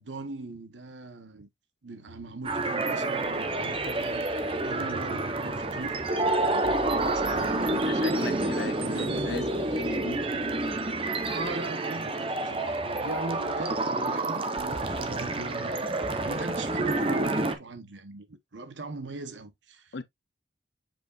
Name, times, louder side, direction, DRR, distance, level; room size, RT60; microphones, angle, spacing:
voice 1, 0.0-1.5 1.8-4.3 4.6-6.0 6.4-7.9 8.6-9.6 11.3-19.9, right 3 dB, 85° right, 1.0 m, -40 dB
Bass guitar, 2.1-2.7 3.2-3.3 3.6-5.2 6.0-7.6 8.4-9.5 9.8-11.7, equal, 60° right, 4.2 m, -50 dB
sound 1, 2.4-17.6, right 2 dB, 30° right, 0.8 m, -28 dB
voice 2, 7.6-10.3 19.9-20.0, left 4 dB, 70° left, 0.7 m, -38 dB
7.3 x 5.4 x 2.4 m
head